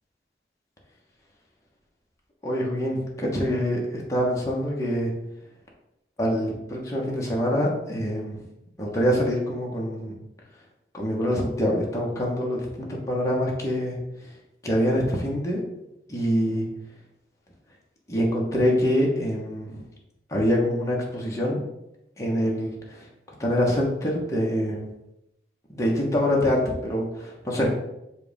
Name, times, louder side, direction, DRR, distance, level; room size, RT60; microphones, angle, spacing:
voice 1, 2.4-5.1 6.2-8.4 8.8-10.2 10.9-14.0 14.6-15.6 16.1-16.7 18.1-19.8 20.3-21.6 22.2-23.1 23.4-24.8 25.7-27.7, equal, 20° left, -3 dB, 1.2 m, -25 dB
7.5 x 2.5 x 5.2 m, 0.87 s
head